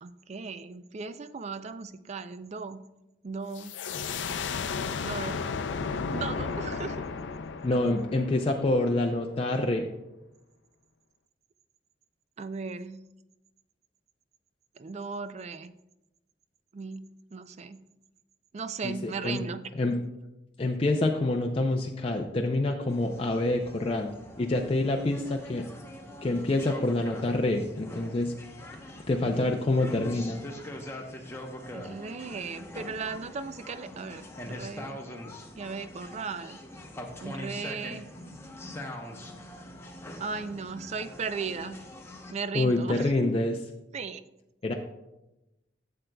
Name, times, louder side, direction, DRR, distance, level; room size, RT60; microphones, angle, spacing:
voice 1, 0.0-2.8 3.2-3.8 5.0-5.4 6.1-7.0 12.4-13.1 14.8-15.7 16.7-17.8 18.5-19.6 31.7-35.0 35.6-36.6 37.2-38.1 40.2-41.8 42.3-43.3 43.9-44.2, right 5 dB, 40° right, 12 dB, 0.4 m, -37 dB
sound 1, 3.5-9.1, left 5 dB, 90° left, 0.5 m, -34 dB
voice 2, 7.6-9.9 18.8-19.4 19.8-20.0 20.6-24.1 24.4-25.6 26.2-28.3 29.1-30.4 42.5-43.6 44.6-44.7, left 2 dB, 30° left, 2 dB, 0.5 m, -27 dB
sound 2, 22.9-42.3, left 1 dB, 15° left, 0.8 m, -43 dB
11.5 x 7.6 x 2.3 m, 0.95 s
head